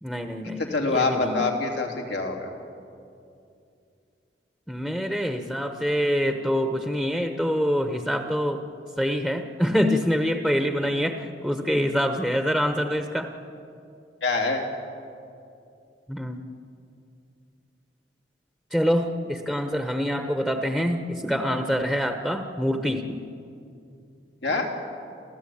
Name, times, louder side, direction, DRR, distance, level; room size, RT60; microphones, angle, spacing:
voice 1, 0.0-0.6 0.9-1.4 4.7-8.6 9.0-13.3 16.1-16.4 18.7-23.2, equal, 5° left, 5 dB, 1.0 m, -25 dB
voice 2, 0.6-2.5 14.2-14.6 24.4-24.7, left 3 dB, 80° left, 2 dB, 3.2 m, -25 dB
29.0 x 14.5 x 8.6 m, 2.5 s
head